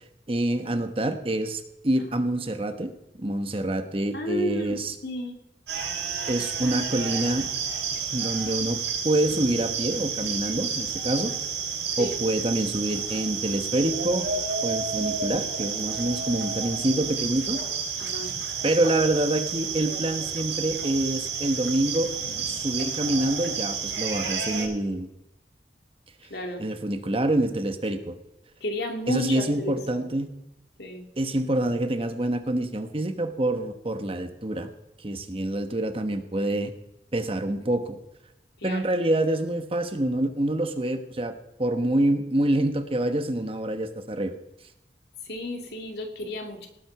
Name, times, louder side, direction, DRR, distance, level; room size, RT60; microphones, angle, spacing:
voice 1, 0.3-4.9 6.3-7.5 7.9-11.3 12.0-14.3 14.6-17.6 18.6-22.1 22.5-25.1 26.6-28.1 29.1-30.3 31.2-34.7 35.0-36.7 37.1-38.0 38.6-41.3 41.6-44.3, right 1 dB, 30° right, 8 dB, 1.1 m, -26 dB
voice 2, 4.1-5.4 12.0-12.2 18.0-18.3 26.3-26.6 28.6-30.0 30.8-31.1 38.6-39.0 45.2-46.7, left 1 dB, 65° left, 3 dB, 2.4 m, -32 dB
sound 1, 5.7-24.7, right 6 dB, 85° right, 5.7 m, -30 dB
18.5 x 7.8 x 5.9 m, 0.85 s
head